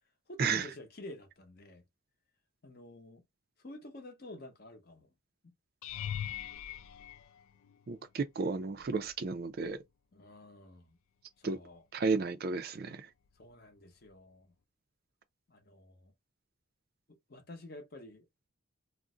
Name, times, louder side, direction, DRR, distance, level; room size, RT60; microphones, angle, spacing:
voice 1, 0.3-1.8 2.6-3.2 3.6-5.1 5.4-5.5 10.1-11.0 11.4-11.8 13.4-14.5 15.5-16.1 17.1-18.3, left 1 dB, 45° left, 0.7 m, -50 dB
sound 1, 5.8-8.1 8.8-9.2 9.6-9.7 14.1-14.2, left 10 dB, 80° left, 0.3 m, -41 dB
voice 2, 7.9-9.8 11.4-11.6 11.9-13.1, right 4 dB, 45° right, 0.4 m, -33 dB
2.5 x 2.0 x 3.7 m
head